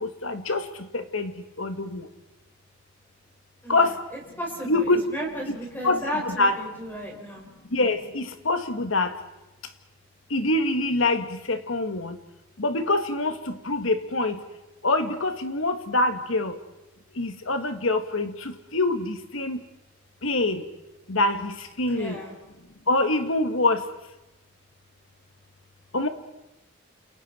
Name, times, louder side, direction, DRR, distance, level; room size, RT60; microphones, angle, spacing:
voice 1, 0.0-0.6 0.9-1.3 1.6-2.0 3.7-3.9 4.7-5.0 5.5-5.6 5.8-6.6 7.7-9.1 10.3-12.2 12.6-14.4 14.8-16.5 17.2-19.6 20.2-20.6 21.1-22.2 22.9-23.8 25.9-26.1, left 2 dB, 75° left, 8 dB, 1.9 m, -25 dB
voice 2, 3.6-7.5 21.9-22.3, equal, 10° left, -1 dB, 6.0 m, -34 dB
30.0 x 28.0 x 4.6 m, 0.97 s
head